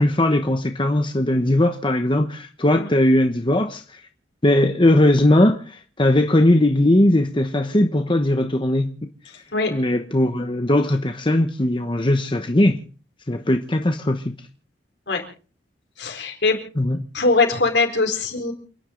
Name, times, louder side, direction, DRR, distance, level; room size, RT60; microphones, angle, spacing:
voice 1, 0.0-4.0 4.4-9.0 9.7-12.8 13.3-14.3 16.8-17.0, left 1 dB, 30° left, 1.1 m, -19 dB
voice 2, 16.0-16.6 17.1-18.5, left 3 dB, 70° left, 4.4 m, -21 dB
29.0 x 11.0 x 3.9 m
head